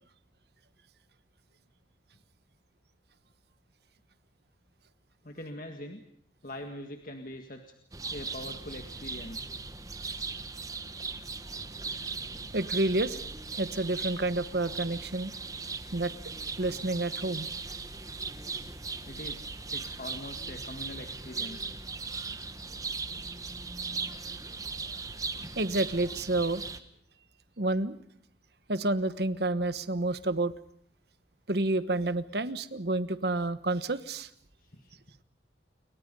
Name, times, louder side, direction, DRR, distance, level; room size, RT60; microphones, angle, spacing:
voice 1, 5.2-6.0 6.4-7.6 8.1-9.5 19.1-19.5 19.7-21.7 34.6-35.0, left 1 dB, 50° left, 4 dB, 1.9 m, -43 dB
sound 1, 7.9-26.8, right 4 dB, 20° right, 1.2 m, -38 dB
voice 2, 12.5-13.2 13.6-15.3 15.9-16.1 16.6-17.5 25.6-26.6 27.6-28.0 28.7-30.5 31.5-34.3, right 2 dB, 60° right, 13 dB, 1.2 m, -29 dB
29.0 x 23.5 x 5.5 m, 0.70 s
head